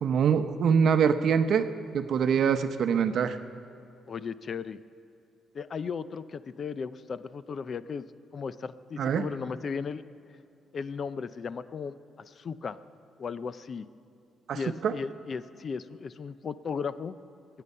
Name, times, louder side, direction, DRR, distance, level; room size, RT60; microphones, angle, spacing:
voice 1, 0.0-1.7 1.9-3.4 9.0-9.3 14.5-14.9, right 7 dB, 65° right, 9 dB, 0.8 m, -24 dB
voice 2, 4.1-4.8 5.5-8.1 8.3-10.0 10.7-11.9 12.3-12.8 13.2-13.9 14.5-17.1, left 5 dB, 45° left, 15 dB, 0.5 m, -36 dB
20.5 x 9.2 x 5.5 m, 2.7 s
cardioid pair, 90°, 0 cm